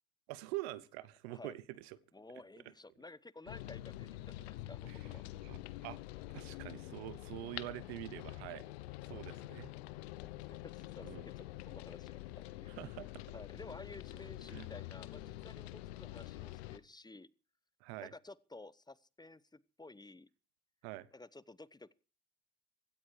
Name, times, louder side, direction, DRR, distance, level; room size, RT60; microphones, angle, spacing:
voice 1, 0.3-2.0 4.9-5.0 5.4-6.0 6.3-8.6 9.1-9.7 11.0-11.2 12.8-13.2 14.5-14.7 17.8-18.1 20.8-21.1, right 17 dB, 85° right, 1.0 m, -45 dB
voice 2, 2.1-5.2 9.1-9.2 10.2-12.7 13.3-17.3 18.0-20.3 21.1-21.9, left 2 dB, 15° left, 1.0 m, -53 dB
sound 1, 3.5-16.8, left 16 dB, 85° left, 1.0 m, -47 dB
16.0 x 14.0 x 4.8 m
hypercardioid pair, 65°, 31 cm